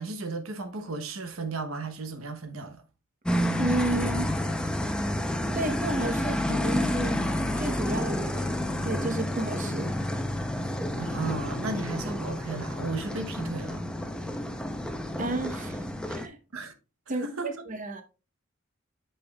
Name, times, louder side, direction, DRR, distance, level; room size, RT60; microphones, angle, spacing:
voice 1, 0.0-2.8 11.0-13.8 16.5-16.7 17.2-17.5, right 3 dB, 80° right, 0.9 m, -35 dB
sound 1, 3.3-16.3, left 1 dB, 5° left, 0.6 m, -30 dB
voice 2, 3.6-4.3 5.5-7.2 7.6-8.6 8.8-9.9 15.2-16.4 17.1-18.0, right 2 dB, 40° right, 0.8 m, -32 dB
8.3 x 5.7 x 2.3 m
head